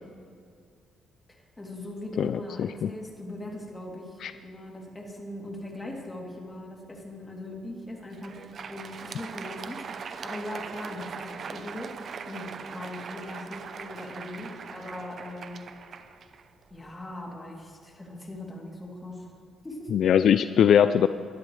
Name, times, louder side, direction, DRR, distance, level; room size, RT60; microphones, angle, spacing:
voice 1, 1.3-15.6 16.7-19.3 19.6-19.9, left 1 dB, 20° left, -1 dB, 3.1 m, -40 dB
voice 2, 2.2-2.9 4.2-4.3 19.9-21.1, left 8 dB, 65° left, 12 dB, 0.4 m, -21 dB
Crowd, 8.0-17.0, right 6 dB, 55° right, 0.8 m, -41 dB
21.5 x 12.0 x 3.3 m, 2.3 s
cardioid pair, 90°, 0 cm